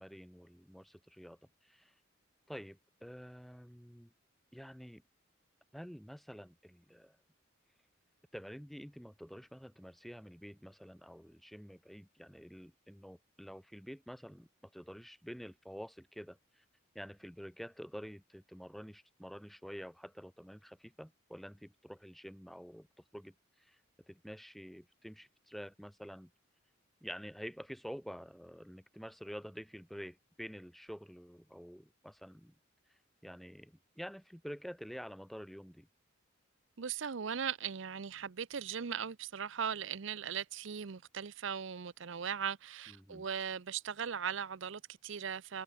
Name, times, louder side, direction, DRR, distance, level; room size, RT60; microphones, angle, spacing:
voice 1, 0.0-1.9 2.5-4.1 4.5-5.0 5.7-7.2 8.3-16.6 16.9-22.9 23.1-23.8 24.1-26.3 27.0-32.5 33.2-35.9 42.9-43.3, equal, ahead, 6.8 m, -48 dB
voice 2, 36.8-45.6, right 7 dB, 65° right, 0.6 m, -39 dB
head